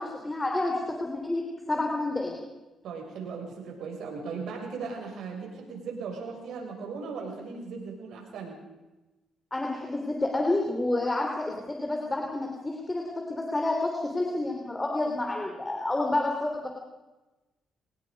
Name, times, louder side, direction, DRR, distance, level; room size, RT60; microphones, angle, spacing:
voice 1, 0.0-2.4 9.5-13.0 13.3-16.7, left 2 dB, 15° left, 0 dB, 3.3 m, -29 dB
voice 2, 2.8-8.5, right 5 dB, 75° right, 1 dB, 7.0 m, -37 dB
26.0 x 19.0 x 5.4 m, 1.1 s
cardioid pair, 90°, 0 cm